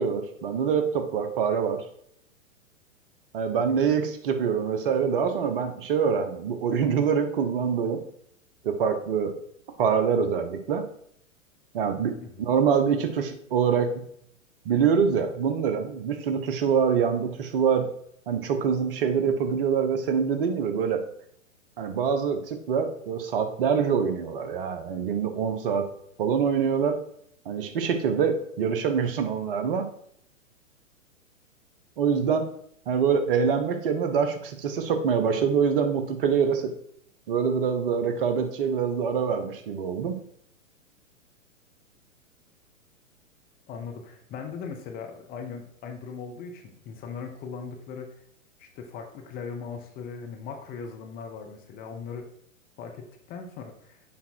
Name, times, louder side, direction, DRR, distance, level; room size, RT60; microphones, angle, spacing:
voice 1, 0.0-1.8 3.3-8.0 8.6-9.3 9.8-10.9 11.7-12.1 12.4-14.0 14.6-17.9 18.3-21.0 21.8-25.9 26.2-27.0 27.5-29.9 32.0-32.5 32.9-36.7 37.3-40.2, right 6 dB, 45° right, 7 dB, 1.0 m, -25 dB
voice 2, 43.7-48.1 48.6-52.3 52.8-54.0, left 5 dB, 20° left, 3 dB, 1.0 m, -39 dB
7.3 x 5.4 x 4.4 m, 0.69 s
figure-of-eight pair, 115°, 40 cm